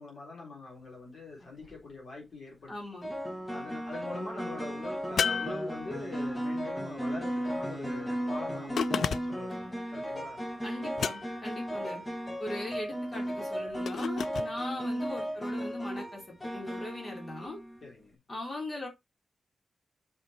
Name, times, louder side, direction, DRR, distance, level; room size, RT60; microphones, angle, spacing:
voice 1, 0.0-2.8 3.5-10.4 14.4-14.5 17.8-18.2, left 3 dB, 55° left, 3.7 m, -43 dB
sound 1, 1.4-1.8 3.0-17.9, equal, 15° left, 1.6 m, -35 dB
voice 2, 2.7-3.1 10.6-12.0 12.4-17.6 18.3-18.9, left 2 dB, 30° left, 3.8 m, -40 dB
sound 2, 5.2-6.3 8.8-9.5 11.0-11.6 13.9-14.5, left 7 dB, 75° left, 0.4 m, -32 dB
6.4 x 5.8 x 4.3 m
wide cardioid pair, 155°, 0 cm